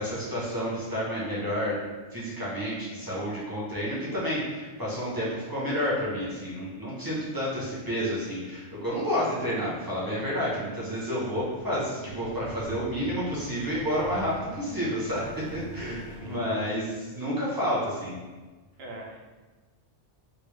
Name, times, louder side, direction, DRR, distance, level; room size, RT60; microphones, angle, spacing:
voice 1, 0.0-1.8 2.1-15.2 15.5-18.2, equal, 20° right, -7 dB, 1.0 m, -30 dB
sound 1, 11.3-16.4, left 1 dB, 40° left, 1.2 m, -44 dB
voice 2, 15.8-16.5 16.8-16.9 18.8-19.2, right 2 dB, 65° right, -1 dB, 0.9 m, -40 dB
3.4 x 2.8 x 3.2 m, 1.3 s
omnidirectional pair, 1.2 m